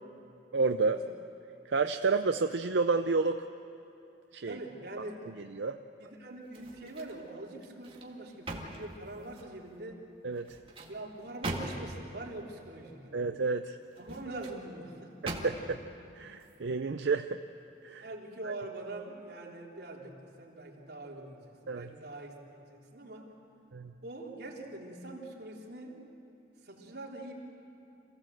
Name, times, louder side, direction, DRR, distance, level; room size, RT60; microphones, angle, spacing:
voice 1, 0.5-1.0 1.7-3.5 4.3-4.6 5.5-5.8 10.2-10.5 13.1-13.8 15.2-15.8 16.1-17.4 17.8-18.1 18.4-18.5 21.7-21.9 23.7-23.9, right 4 dB, 90° right, 7 dB, 0.6 m, -30 dB
voice 2, 4.4-5.3 6.0-10.0 10.9-13.3 14.0-15.1 18.0-23.3 24.0-26.0 26.6-27.3, right 2 dB, 70° right, -3 dB, 3.5 m, -44 dB
sound 1, 6.5-7.2 7.6-9.6 10.3-12.1 13.8-14.6 15.2-15.8 16.3-16.5, right 1 dB, 30° right, 2.0 m, -41 dB
27.0 x 16.0 x 7.8 m, 2.9 s
head